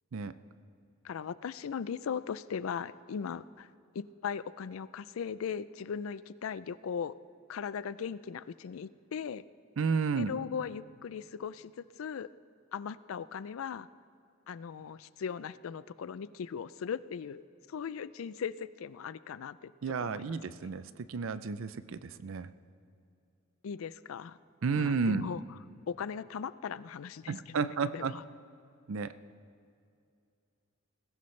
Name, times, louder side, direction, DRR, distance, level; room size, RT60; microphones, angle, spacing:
voice 1, 1.0-3.7 3.9-7.1 7.5-9.4 10.2-12.3 12.7-13.9 14.5-17.4 17.7-19.7 20.0-20.4 20.6-20.7 23.6-24.4 24.8-25.4 25.9-27.6 27.9-28.2, left 7 dB, 80° left, 17 dB, 0.4 m, -38 dB
voice 2, 9.8-10.3 19.8-22.5 24.6-25.3 27.3-28.1 28.9-29.1, right 5 dB, 70° right, 14 dB, 0.5 m, -32 dB
20.5 x 16.0 x 3.2 m, 2.5 s
head